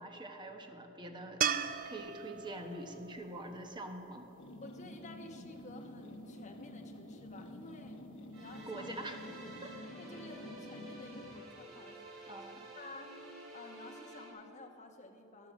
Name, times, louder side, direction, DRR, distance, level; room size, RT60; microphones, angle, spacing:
voice 1, 0.0-1.4 1.8-4.3 8.7-9.2 9.6-9.9 12.3-12.7, right 1 dB, 20° right, 4 dB, 1.1 m, -45 dB
sound 1, 1.4-4.6 7.9-8.0, right 8 dB, 40° right, 0.4 m, -38 dB
sound 2, 4.4-11.4, left 1 dB, 65° left, 1.1 m, -49 dB
voice 2, 4.6-8.0 8.3-8.9 10.0-12.3 12.8-13.1 13.5-15.5, left 2 dB, 35° left, 3 dB, 1.0 m, -52 dB
sound 3, 8.3-14.3, right 1 dB, 70° right, 3.7 m, -51 dB
13.5 x 11.5 x 6.3 m, 2.9 s
head